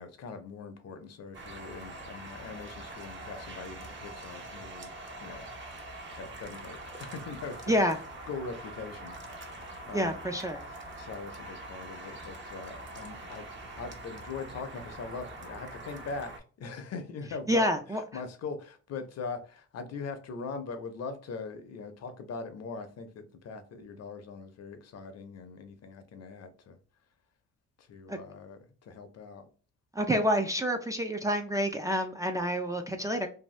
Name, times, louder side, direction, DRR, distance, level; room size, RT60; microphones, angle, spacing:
voice 1, 0.0-4.9 5.2-5.5 6.1-7.7 8.3-10.2 11.0-13.5 13.8-17.7 18.1-26.8 27.8-29.5, left 4 dB, 55° left, 0.6 m, -41 dB
sound 1, 1.3-16.4, right 2 dB, 40° right, 0.8 m, -44 dB
voice 2, 9.9-10.6 17.5-18.0 28.1-28.2 29.9-33.3, equal, 10° right, 0.4 m, -28 dB
2.7 x 2.2 x 3.1 m
cardioid pair, 90°, 30 cm